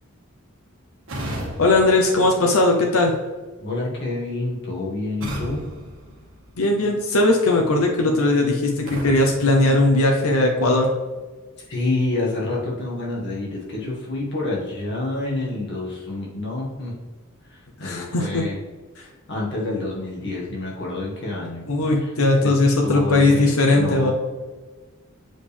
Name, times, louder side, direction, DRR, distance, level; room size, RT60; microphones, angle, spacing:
sound 1, 1.1-3.0 5.2-6.9 8.9-10.5, equal, 65° right, 1.7 m, -35 dB
voice 1, 1.6-3.1 6.6-10.9 17.8-18.4 19.0-19.1 21.7-24.1, left 2 dB, 80° left, 1 dB, 0.8 m, -18 dB
voice 2, 3.6-5.7 11.7-16.9 17.5-18.6 19.3-22.6 22.8-24.1, left 2 dB, 55° left, -4 dB, 1.8 m, -28 dB
7.6 x 5.1 x 3.5 m, 1.3 s
head